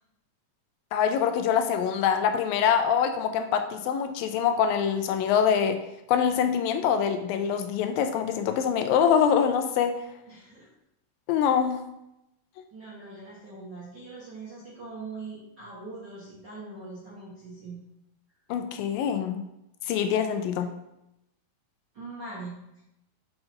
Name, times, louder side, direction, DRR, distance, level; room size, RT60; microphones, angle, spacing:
voice 1, 0.9-5.8 6.1-9.9 11.3-11.8 18.5-19.4 19.9-20.7, left 8 dB, 85° left, 7 dB, 2.3 m, -24 dB
voice 2, 10.3-10.7 12.7-17.8 21.9-22.5, right 3 dB, 55° right, -8 dB, 1.2 m, -42 dB
5.7 x 5.2 x 4.4 m, 0.86 s
omnidirectional pair, 4.1 m